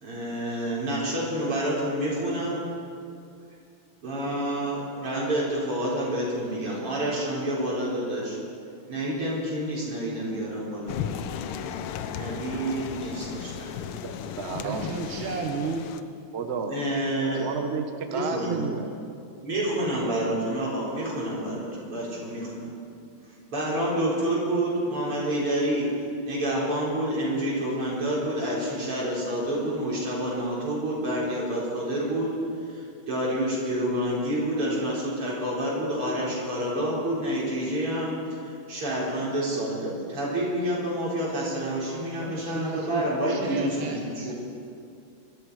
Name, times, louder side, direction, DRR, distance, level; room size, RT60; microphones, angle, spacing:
voice 1, 0.0-2.7 4.0-8.4 8.9-11.0 12.1-13.7 16.7-17.5 18.1-18.6 19.4-22.7 23.5-25.9 26.3-32.4 32.6-44.3, right 1 dB, 85° right, -6 dB, 5.3 m, -28 dB
sound 1, 10.9-16.0, left 8 dB, 85° left, 1.7 m, -35 dB
voice 2, 13.9-14.9 16.3-16.8 17.4-18.9, right 5 dB, 40° right, 6 dB, 1.0 m, -31 dB
voice 3, 14.6-15.8 42.2-44.3, right 5 dB, 70° right, 2 dB, 1.8 m, -33 dB
22.0 x 13.0 x 4.8 m, 2.5 s
omnidirectional pair, 2.4 m